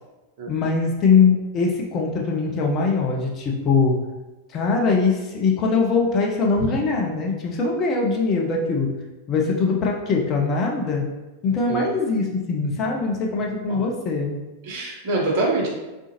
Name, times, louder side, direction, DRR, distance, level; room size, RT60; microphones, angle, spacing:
voice 1, 0.5-4.0 4.5-8.9 9.3-11.1 11.4-14.4, left 4 dB, 30° left, 0 dB, 0.5 m, -22 dB
voice 2, 14.6-15.7, right 2 dB, 45° right, -3 dB, 0.9 m, -24 dB
3.6 x 2.5 x 2.9 m, 1.1 s
figure-of-eight pair, 90°, 0 cm